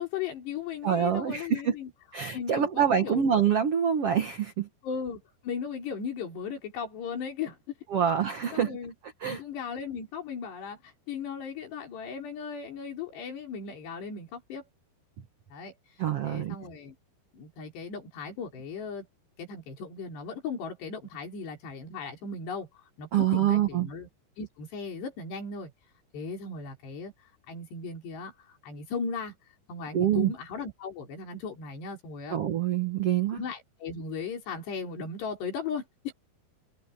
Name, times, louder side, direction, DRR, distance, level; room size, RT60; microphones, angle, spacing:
voice 1, 0.0-1.9 2.3-3.3 4.8-7.6 8.5-8.9 9.3-14.7 15.5-15.7 16.2-16.9 17.3-19.1 19.4-24.1 24.4-25.7 26.1-27.1 27.5-29.3 29.7-32.4 33.3-36.1, left 5 dB, 75° left, 6.8 m, -37 dB
voice 2, 0.8-1.7 2.1-4.7 7.9-8.8 9.2-9.4 16.0-16.6 23.1-23.9 29.9-30.3 32.3-33.4, right 9 dB, 75° right, 1.3 m, -26 dB
omnidirectional pair, 4.9 m